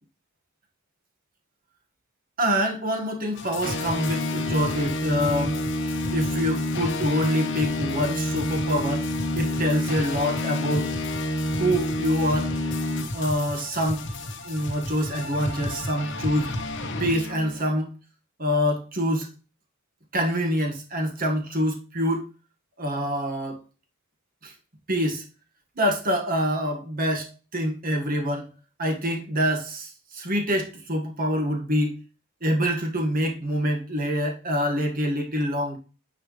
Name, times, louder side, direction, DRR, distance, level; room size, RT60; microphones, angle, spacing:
voice 1, 2.4-5.6 6.1-10.9 11.5-12.5 13.1-14.1 14.4-16.6 17.0-17.9 18.4-19.3 20.1-22.3 22.8-23.6 24.4-24.5 24.9-25.2 25.8-28.5 28.8-32.0 32.4-35.8, equal, 40° right, 1.7 m, -26 dB
sound 1, 3.4-17.7, left 1 dB, 55° left, 1.2 m, -29 dB
9.9 x 4.8 x 3.3 m
head